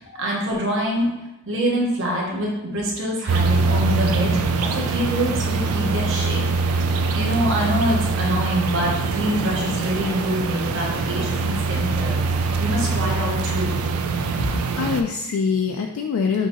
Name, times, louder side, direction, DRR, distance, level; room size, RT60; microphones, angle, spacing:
voice 1, 0.2-1.1 1.5-6.4 6.7-6.8 7.1-13.7 14.4-14.5, equal, 60° right, -3 dB, 1.1 m, -25 dB
sound 1, 3.3-15.0, right 4 dB, 80° right, 0.4 m, -23 dB
voice 2, 14.8-16.5, left 5 dB, 70° left, 3 dB, 0.3 m, -24 dB
6.3 x 2.7 x 2.9 m, 0.96 s
head